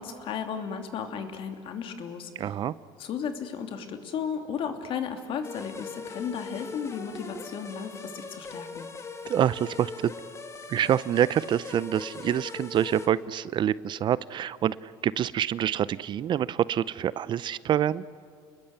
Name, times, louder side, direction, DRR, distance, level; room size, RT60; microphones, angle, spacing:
voice 1, 0.0-2.3 3.0-8.9, left 7 dB, 55° left, 6 dB, 2.8 m, -34 dB
voice 2, 2.4-2.7 9.3-10.1 10.7-18.0, right 10 dB, 45° right, 18 dB, 0.6 m, -26 dB
sound 1, 5.4-13.1, left 4 dB, 25° left, 2.4 m, -41 dB
29.0 x 20.5 x 8.2 m, 2.2 s
supercardioid pair, 95°, 11 cm